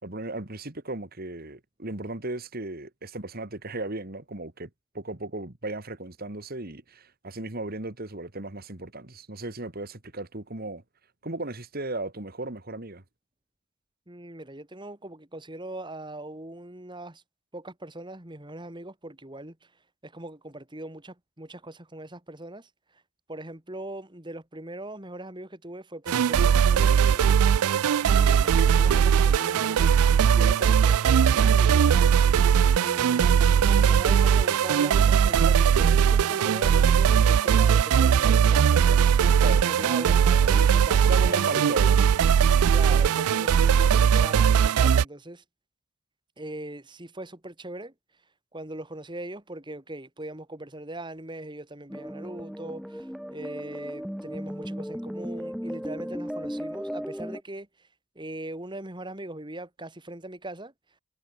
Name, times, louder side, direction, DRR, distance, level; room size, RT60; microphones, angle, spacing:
voice 1, 0.0-4.7 4.9-10.8 11.2-13.0 39.4-39.9 41.0-42.0 42.9-43.1, right 2 dB, 45° right, 2.0 m, -35 dB
voice 2, 14.1-17.2 17.5-19.7 20.0-23.0 23.3-30.0 30.3-32.0 32.6-41.8 42.7-45.4 46.4-48.2 48.5-57.9 58.2-60.7, right 1 dB, 20° right, 2.3 m, -40 dB
sound 1, 26.1-45.0, right 7 dB, 85° right, 0.4 m, -20 dB
sound 2, 51.9-57.4, equal, ahead, 0.6 m, -35 dB
head